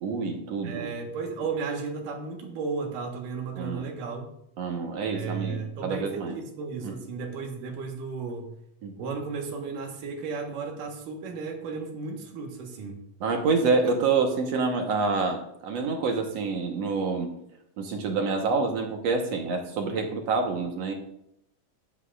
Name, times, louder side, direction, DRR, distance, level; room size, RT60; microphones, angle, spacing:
voice 1, 0.0-0.9 3.6-3.9 4.6-6.4 6.8-6.9 8.8-8.9 13.2-17.3 17.8-20.9, right 4 dB, 60° right, 3 dB, 2.1 m, -27 dB
voice 2, 0.6-4.3 5.1-8.5 9.0-13.0, right 4 dB, 75° right, 2 dB, 3.0 m, -34 dB
15.0 x 11.0 x 2.5 m, 0.76 s
omnidirectional pair, 3.8 m